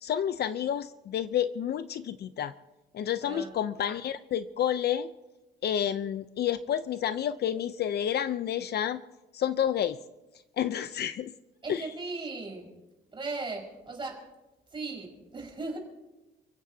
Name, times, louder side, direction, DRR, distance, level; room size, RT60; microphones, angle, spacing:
voice 1, 0.0-2.5 2.9-5.1 5.6-9.0 9.3-10.0 10.6-11.3 11.7-11.9, left 10 dB, 55° left, 12 dB, 0.7 m, -30 dB
voice 2, 3.2-3.6 11.6-12.7 13.1-14.2 14.7-15.8, right 3 dB, 25° right, -1 dB, 5.2 m, -37 dB
29.5 x 16.0 x 2.8 m, 1.0 s
cardioid pair, 130°, 20 cm